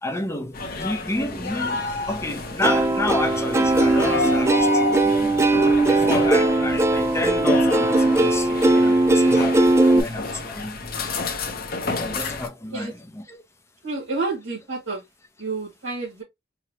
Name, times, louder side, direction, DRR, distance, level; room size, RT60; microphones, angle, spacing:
voice 1, 0.0-5.3 5.8-10.8 12.0-13.4, left 2 dB, 15° left, 0.7 m, -30 dB
sound 1, 0.5-12.5, left 3 dB, 50° left, 0.9 m, -30 dB
Plucked string instrument, 2.6-10.0, right 2 dB, 15° right, 0.4 m, -19 dB
voice 2, 13.8-15.0 15.4-16.2, right 3 dB, 75° right, 2.0 m, -29 dB
4.7 x 2.3 x 2.9 m
head